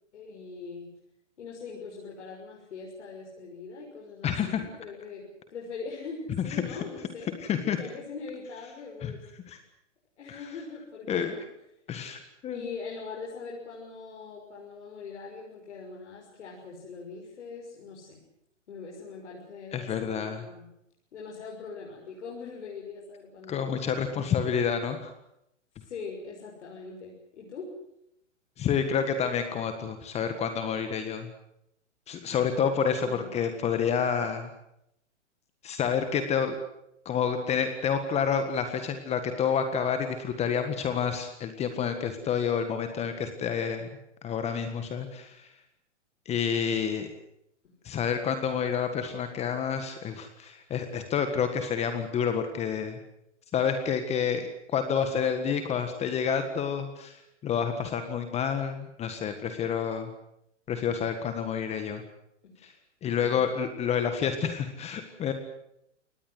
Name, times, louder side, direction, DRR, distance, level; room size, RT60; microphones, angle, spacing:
voice 1, 0.1-0.9 1.4-7.3 7.8-9.2 10.2-11.4 12.4-18.2 18.7-20.7 21.1-24.0 25.8-27.7 33.0-33.4 62.4-62.5, left 4 dB, 65° left, -2 dB, 6.5 m, -42 dB
voice 2, 4.2-4.6 7.5-7.8 9.0-9.1 9.5-9.6 10.3-10.5 11.1-11.3 11.9-12.6 19.7-20.4 23.5-25.1 28.6-31.3 32.1-34.5 35.6-36.6 37.0-43.9 44.2-45.5 46.2-47.1 47.8-53.0 53.5-60.1 60.7-62.0 62.6-62.7 63.0-65.3, left 7 dB, 15° left, 8 dB, 1.6 m, -29 dB
24.0 x 19.0 x 7.9 m, 0.79 s
hypercardioid pair, 140°, 37 cm